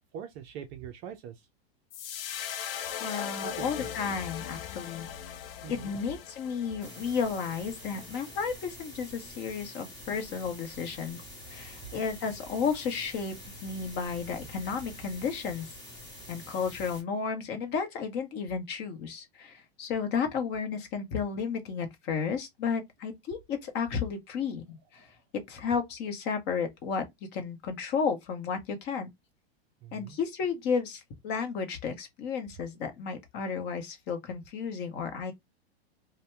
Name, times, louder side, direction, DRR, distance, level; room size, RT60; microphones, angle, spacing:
voice 1, 0.1-1.3 3.4-3.9 5.6-6.0 29.8-30.2, right 9 dB, 35° right, 0.5 m, -42 dB
sound 1, 1.9-8.3, left 10 dB, 60° left, 0.6 m, -39 dB
voice 2, 3.0-5.1 5.7-11.2 11.5-13.4 13.6-15.7 16.3-25.1 25.5-27.0 27.3-29.1 29.9-35.3, left 6 dB, 35° left, 0.8 m, -33 dB
sound 2, 6.8-17.0, equal, 10° left, 1.5 m, -46 dB
2.7 x 2.1 x 3.2 m
hypercardioid pair, 135°, 32 cm